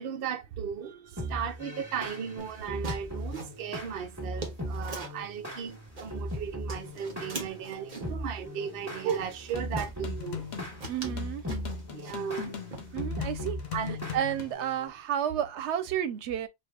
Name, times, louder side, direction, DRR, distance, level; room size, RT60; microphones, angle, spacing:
voice 1, 0.0-10.5 11.9-12.7 13.7-14.0, right 8 dB, 65° right, 0.7 m, -36 dB
sound 1, 1.2-14.9, equal, 15° right, 1.4 m, -39 dB
sound 2, 2.4-5.3 5.7-6.4 6.7-8.2 8.7-8.8 9.1-10.0 10.4-10.5 10.8-12.4 12.7-13.3, right 3 dB, 45° right, 1.0 m, -43 dB
sound 3, 9.6-14.5, left 8 dB, 70° left, 1.0 m, -39 dB
voice 2, 10.9-11.4 12.9-13.6 14.1-16.5, right 10 dB, 90° right, 0.9 m, -31 dB
4.8 x 2.4 x 2.3 m
omnidirectional pair, 1.1 m